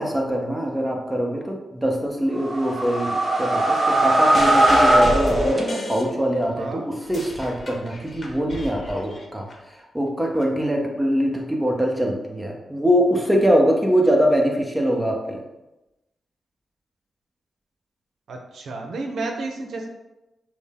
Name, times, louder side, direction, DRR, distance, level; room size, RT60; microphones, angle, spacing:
voice 1, 0.0-9.5 9.9-15.4, equal, 5° right, 0 dB, 0.8 m, -23 dB
sound 1, 2.4-6.1, right 1 dB, 30° right, 1.1 m, -19 dB
sound 2, 4.3-6.6 6.9-9.5 10.4-10.5, left 1 dB, 45° left, 0.9 m, -32 dB
voice 2, 18.3-19.9, right 3 dB, 80° right, 2 dB, 0.6 m, -31 dB
6.1 x 2.1 x 3.6 m, 0.99 s
cardioid pair, 80°, 0 cm